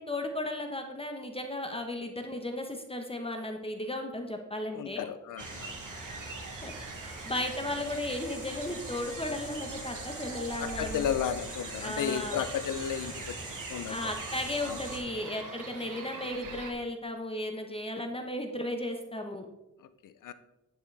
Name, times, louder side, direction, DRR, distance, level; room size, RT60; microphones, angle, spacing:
voice 1, 0.0-5.1 6.6-6.7 7.0-11.1 11.8-12.4 13.9-19.5, left 1 dB, 20° left, 3 dB, 1.1 m, -35 dB
voice 2, 4.7-5.7 10.6-13.4 13.7-14.0 14.6-14.8 19.8-20.3, left 9 dB, 90° left, 12 dB, 0.6 m, -33 dB
sound 1, 5.4-15.0, equal, 25° right, 3.7 m, -44 dB
sound 2, 5.4-16.7, right 4 dB, 90° right, 1.3 m, -43 dB
9.5 x 8.3 x 3.4 m, 0.97 s
cardioid pair, 85°, 31 cm